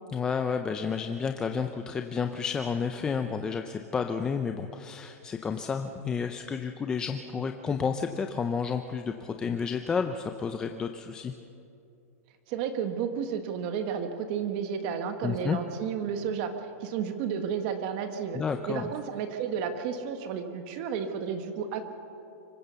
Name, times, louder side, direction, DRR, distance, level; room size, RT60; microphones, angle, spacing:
voice 1, 0.1-11.3 15.2-15.6 18.3-18.9, left 6 dB, 10° left, 6 dB, 0.4 m, -31 dB
voice 2, 12.5-16.5 16.8-18.4 18.7-21.8, right 7 dB, 35° right, 7 dB, 1.3 m, -32 dB
25.0 x 15.5 x 6.9 m, 2.6 s
supercardioid pair, 175°, 8 cm